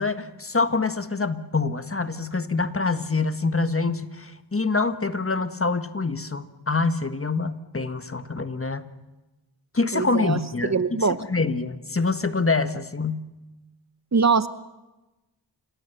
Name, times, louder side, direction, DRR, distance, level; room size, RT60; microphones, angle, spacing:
voice 1, 0.0-8.9 9.7-13.2, left 3 dB, 30° left, 10 dB, 1.4 m, -26 dB
voice 2, 9.9-11.2 14.1-14.5, right 5 dB, 40° right, 13 dB, 0.9 m, -23 dB
29.0 x 16.5 x 6.9 m, 1.1 s
cardioid pair, 45°, 44 cm